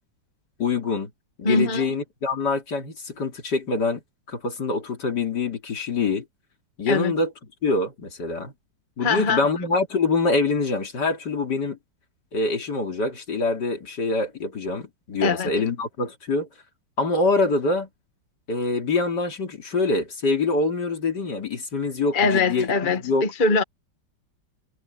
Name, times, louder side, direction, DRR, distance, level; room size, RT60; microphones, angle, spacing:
voice 1, 0.6-1.1 1.4-4.0 4.3-6.3 6.8-7.3 7.6-8.5 9.0-11.8 12.3-16.5 17.0-17.9 18.5-23.3, left 3 dB, 65° left, 3.4 m, -25 dB
voice 2, 1.4-1.9 6.9-7.1 9.0-9.5 15.2-15.5 22.1-23.6, left 3 dB, 30° left, 1.2 m, -22 dB
omnidirectional pair, 2.0 m